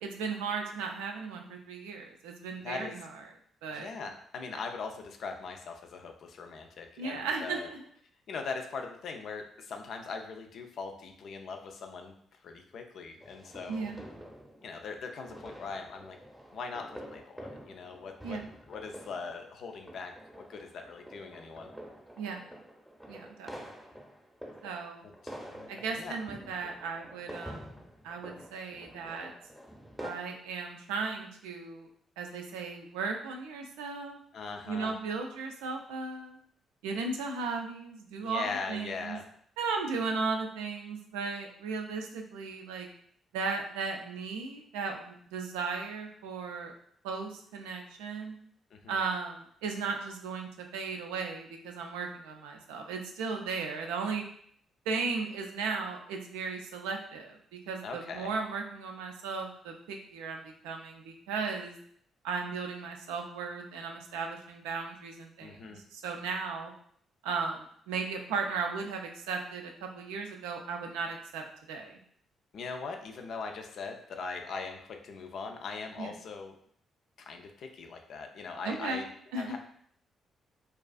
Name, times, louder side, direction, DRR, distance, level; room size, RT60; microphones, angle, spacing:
voice 1, 0.0-3.1 3.6-3.9 7.0-7.8 13.7-14.0 18.2-18.4 22.2-22.4 23.1-23.7 24.6-25.0 25.7-29.3 30.0-31.9 32.2-34.2 34.7-36.4 36.8-39.2 39.6-42.9 43.3-46.7 47.0-48.4 48.9-54.2 54.9-61.7 62.2-65.6 65.9-66.7 67.2-72.0 76.0-76.1 78.6-79.6, right 4 dB, 80° right, 3 dB, 0.3 m, -36 dB
voice 2, 2.6-3.0 3.7-7.7 8.3-12.2 12.4-13.9 14.6-16.2 16.5-18.4 18.7-21.7 25.2-26.2 34.3-34.9 38.2-39.3 48.7-49.0 57.8-58.3 65.4-65.8 72.5-76.5 77.2-79.0 79.3-79.6, left 4 dB, 65° left, 4 dB, 0.3 m, -40 dB
sound 1, 13.2-30.1, equal, 5° right, 0.7 m, -48 dB
2.4 x 2.3 x 2.3 m, 0.64 s
hypercardioid pair, 45°, 0 cm